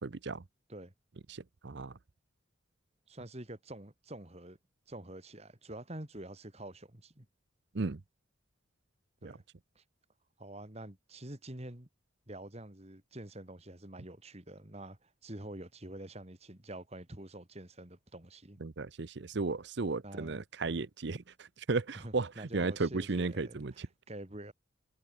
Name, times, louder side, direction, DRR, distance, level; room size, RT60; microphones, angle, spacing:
voice 1, 0.0-0.4 1.3-2.0 7.7-8.0 9.2-9.3 18.6-23.9, right 3 dB, 55° right, 0.7 m, -35 dB
voice 2, 3.1-4.6 4.9-7.3 9.2-9.4 9.8-9.9 10.4-11.9 12.3-18.6 20.0-20.4 21.9-24.5, right 1 dB, 30° right, 2.4 m, -47 dB
head